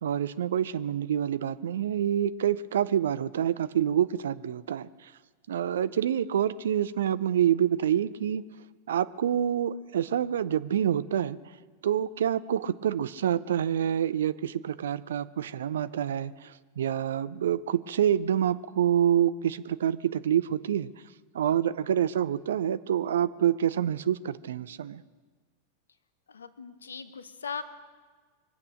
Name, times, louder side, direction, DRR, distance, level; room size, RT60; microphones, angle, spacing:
voice 1, 0.0-5.1 5.5-8.4 8.9-11.4 11.8-20.9 21.3-25.0, right 10 dB, 60° right, 15 dB, 0.5 m, -27 dB
voice 2, 26.3-27.6, left 6 dB, 70° left, 12 dB, 0.9 m, -39 dB
24.0 x 8.4 x 6.4 m, 1.5 s
figure-of-eight pair, 90°, 0 cm